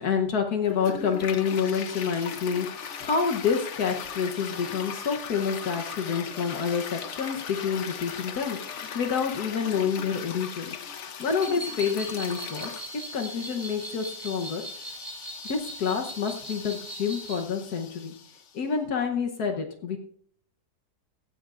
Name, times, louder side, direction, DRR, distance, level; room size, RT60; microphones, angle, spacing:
voice 1, 0.0-10.7 11.2-12.7 13.1-14.6 15.4-18.1 18.5-20.0, left 6 dB, 70° left, 3 dB, 1.5 m, -28 dB
Toilet flush, 0.6-18.6, left 6 dB, 50° left, 1.1 m, -39 dB
sound 1, 11.2-17.4, right 2 dB, 35° right, 7.4 m, -40 dB
16.5 x 15.5 x 2.5 m, 0.64 s
omnidirectional pair, 1.7 m